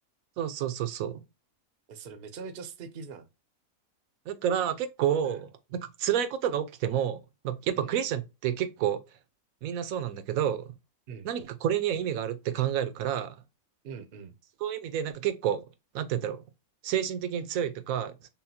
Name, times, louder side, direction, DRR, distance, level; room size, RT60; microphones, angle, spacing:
voice 1, 0.4-1.2 4.3-5.4 6.0-9.0 9.6-10.7 11.2-13.4 14.6-15.6 15.9-16.4 16.8-18.1, right 10 dB, 75° right, 1.0 m, -29 dB
voice 2, 1.9-3.3 5.2-5.4 7.7-7.9 11.1-11.3 13.8-14.3, right 5 dB, 50° right, 0.7 m, -42 dB
5.6 x 2.1 x 2.7 m
omnidirectional pair, 1.5 m